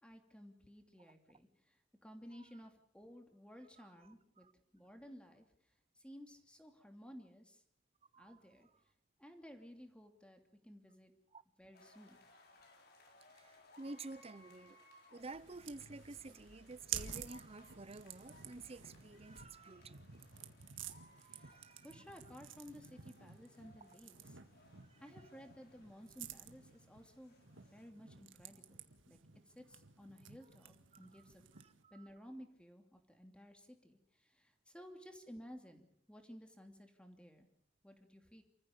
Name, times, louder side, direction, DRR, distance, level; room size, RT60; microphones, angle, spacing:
voice 1, 0.0-4.5 4.7-5.4 5.9-7.6 8.2-8.7 9.2-11.1 11.6-12.2 21.2-24.4 25.0-29.2 29.5-31.4 31.9-37.5 37.8-38.4, equal, 5° left, 2.8 m, -56 dB
voice 2, 3.8-4.1 4.4-4.5 8.1-8.7 11.3-11.4 13.3-14.8 15.1-20.0 21.3-22.0 24.8-25.0 30.9-31.2 31.6-32.1, right 3 dB, 30° right, 0.8 m, -51 dB
sound 1, 11.7-27.9, left 2 dB, 55° left, 4.0 m, -66 dB
sound 2, 15.2-31.8, right 9 dB, 75° right, 1.8 m, -51 dB
28.5 x 15.0 x 7.2 m
head